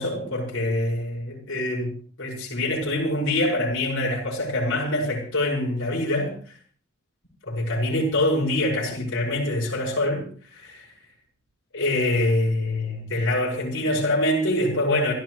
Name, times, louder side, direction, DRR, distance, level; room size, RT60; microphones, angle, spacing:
voice 1, 0.0-1.9 2.2-6.5 7.5-10.9 11.7-15.1, left 1 dB, 60° left, 6.0 m, -25 dB
27.0 x 13.0 x 3.2 m
head